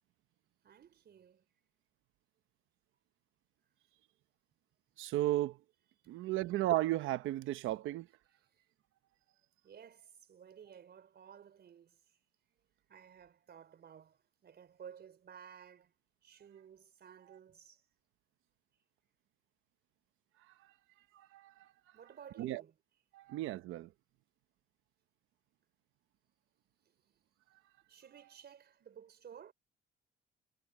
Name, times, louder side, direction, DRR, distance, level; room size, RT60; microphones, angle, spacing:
voice 1, 0.6-1.5 6.0-6.1 8.4-8.6 9.6-12.2 12.5-12.6 12.9-15.9 16.2-17.8 21.9-22.8 26.8-27.2 27.9-29.5, right 8 dB, 55° right, 4.3 m, -55 dB
voice 2, 5.0-5.6 6.1-8.1 21.1-21.7 22.4-22.6 23.1-23.9, right 15 dB, 90° right, 0.8 m, -34 dB
cardioid pair, 90°, 20 cm